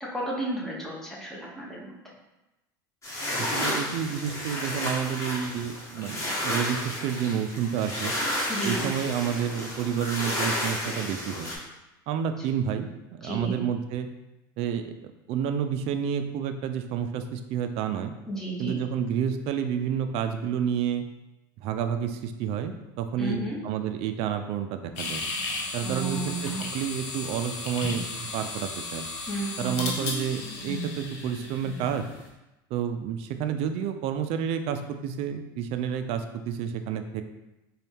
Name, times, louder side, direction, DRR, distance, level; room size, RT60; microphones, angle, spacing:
voice 1, 0.0-1.9 8.5-8.9 13.2-13.6 18.3-18.8 23.2-23.6 25.8-26.7 29.3-29.9, right 2 dB, 5° left, -5 dB, 1.1 m, -32 dB
sound 1, 3.0-11.6, left 1 dB, 25° left, 1.3 m, -31 dB
voice 2, 3.4-8.1 8.6-11.5 12.1-14.1 14.6-18.1 18.6-21.0 21.6-25.2 25.7-29.1 29.6-32.0 32.7-37.2, right 8 dB, 60° right, 8 dB, 0.4 m, -30 dB
sound 2, 25.0-32.2, left 3 dB, 65° left, 0.9 m, -34 dB
4.0 x 2.3 x 3.3 m, 0.98 s
hypercardioid pair, 90°, 12 cm